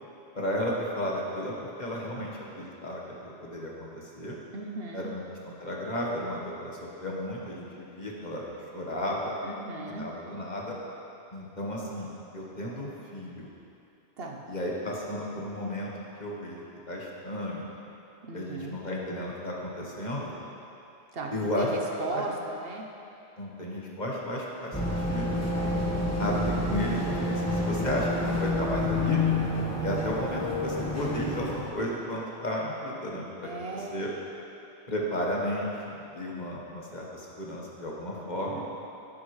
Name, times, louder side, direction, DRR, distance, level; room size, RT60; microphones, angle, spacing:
voice 1, 0.3-4.4 4.9-8.4 8.7-9.3 9.9-10.7 11.3-13.5 14.5-15.9 16.2-17.7 18.3-20.3 21.3-21.7 22.1-22.2 23.4-25.4 26.2-29.2 29.8-33.5 33.9-34.1 34.9-38.6, left 1 dB, 40° left, -3 dB, 1.4 m, -33 dB
voice 2, 4.5-5.1 9.4-10.1 14.2-14.4 18.2-18.8 21.1-22.9 33.4-34.0 38.2-38.6, right 2 dB, 60° right, 1 dB, 1.0 m, -37 dB
sound 1, 24.7-31.7, left 2 dB, 15° left, 1.3 m, -29 dB
16.5 x 7.7 x 3.2 m, 2.8 s
omnidirectional pair, 1.2 m